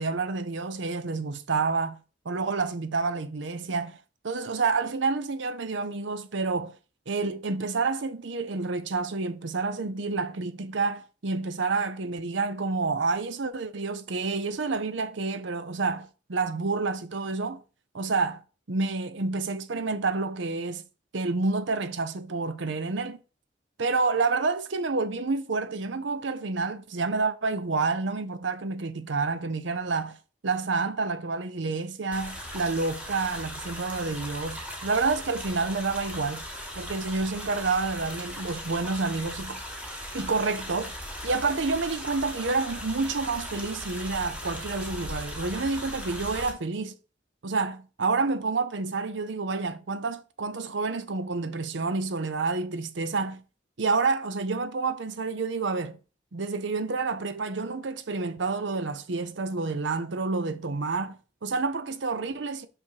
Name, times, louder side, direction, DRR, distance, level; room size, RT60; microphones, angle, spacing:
voice 1, 0.0-2.0 2.2-4.0 4.2-6.7 7.1-17.6 17.9-18.4 18.7-20.8 21.1-23.2 23.8-30.2 30.4-36.4 36.8-39.6 40.1-40.9 41.2-46.9 47.4-53.4 53.8-56.0 56.3-62.7, right 4 dB, 70° right, 0.7 m, -29 dB
sound 1, 32.1-46.5, equal, 5° right, 1.2 m, -38 dB
5.7 x 5.4 x 4.6 m
head